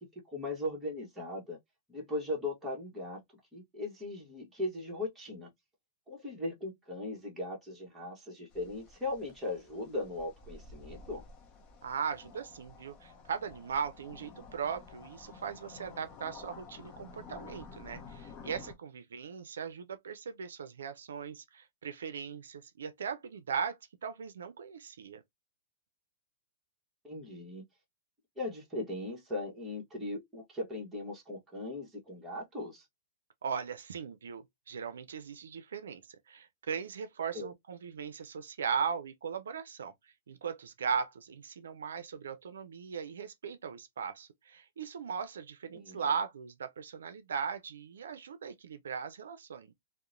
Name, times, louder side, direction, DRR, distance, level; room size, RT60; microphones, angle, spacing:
voice 1, 0.1-1.6 1.9-3.2 3.5-5.5 6.1-11.2 27.0-27.6 28.4-32.9 37.3-37.5 45.7-46.0, left 2 dB, 10° right, 1.1 m, -38 dB
sound 1, 8.5-18.7, left 4 dB, 30° left, 0.6 m, -51 dB
voice 2, 11.8-25.2 33.4-36.0 36.3-39.9 40.3-49.8, right 6 dB, 90° right, 0.4 m, -38 dB
2.8 x 2.0 x 2.5 m
hypercardioid pair, 145°, 0 cm